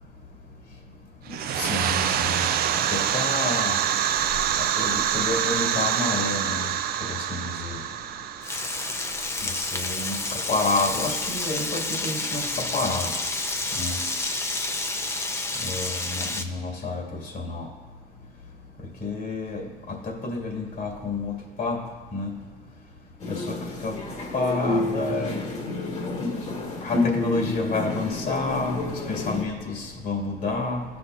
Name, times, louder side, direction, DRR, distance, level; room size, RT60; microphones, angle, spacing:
sound 1, 1.3-9.8, right 9 dB, 65° right, 0.5 m, -26 dB
voice 1, 1.5-2.4 2.9-3.7 4.8-6.7 7.0-7.8 9.4-13.1 13.8-14.0 15.6-17.7 19.0-19.6 19.9-21.8 22.1-22.4 23.3-23.6 23.8-24.0 24.3-25.3 26.8-30.8, left 3 dB, 65° left, -2 dB, 2.2 m, -29 dB
Frying (food), 8.4-16.4, left 2 dB, 15° left, 0.7 m, -29 dB
sound 2, 23.2-29.4, left 2 dB, 45° left, 1.6 m, -29 dB
16.5 x 5.9 x 2.6 m, 1.4 s
cardioid pair, 110°, 17 cm